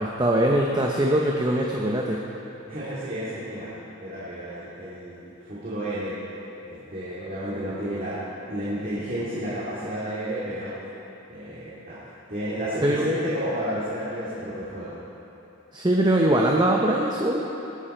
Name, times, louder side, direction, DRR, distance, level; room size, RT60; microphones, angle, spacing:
voice 1, 0.0-2.2 12.8-13.1 15.7-17.4, right 1 dB, 20° right, -1 dB, 0.8 m, -22 dB
voice 2, 2.7-3.7 4.0-6.2 6.6-8.2 8.5-10.8 11.3-12.0 12.3-15.0, equal, 40° right, -10 dB, 2.5 m, -31 dB
19.5 x 9.8 x 4.4 m, 3.0 s
head